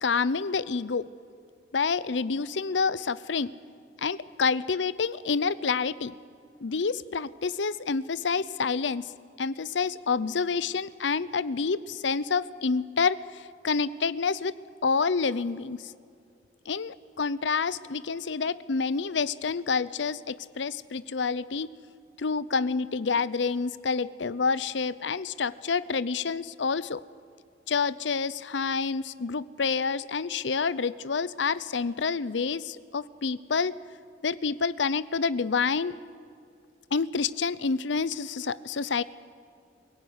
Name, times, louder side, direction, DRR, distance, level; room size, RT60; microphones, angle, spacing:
voice 1, 0.0-1.1 1.7-3.5 4.0-6.1 6.6-9.1 9.4-14.5 14.8-15.9 16.7-21.7 22.2-27.0 27.7-33.7 34.2-36.0 36.9-39.0, left 5 dB, 75° left, 18 dB, 0.7 m, -28 dB
23.5 x 17.0 x 9.6 m, 2.3 s
head